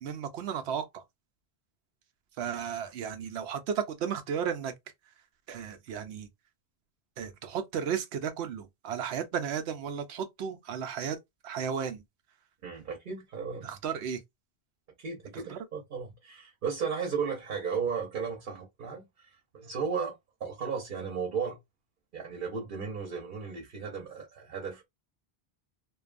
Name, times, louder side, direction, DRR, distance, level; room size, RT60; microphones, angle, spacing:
voice 1, 0.0-1.0 2.4-4.7 5.5-6.3 7.2-11.2 11.4-12.0 13.6-14.2 15.3-15.6, right 7 dB, 90° right, 0.9 m, -34 dB
voice 2, 12.6-13.7 15.0-19.3 19.5-20.1 20.4-21.6 22.1-24.9, right 6 dB, 55° right, 0.9 m, -35 dB
2.6 x 2.3 x 2.4 m
omnidirectional pair, 1.1 m